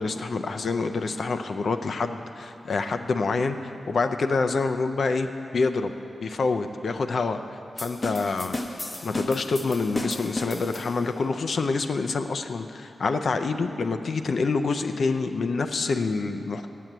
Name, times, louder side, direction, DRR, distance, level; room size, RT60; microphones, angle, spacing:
voice 1, 0.0-3.6 3.9-5.9 6.2-16.7, left 4 dB, 60° left, 7 dB, 0.5 m, -27 dB
sound 1, 7.8-11.2, left 2 dB, 25° left, 0.7 m, -34 dB
8.5 x 7.5 x 7.9 m, 2.6 s
wide cardioid pair, 125°, 0 cm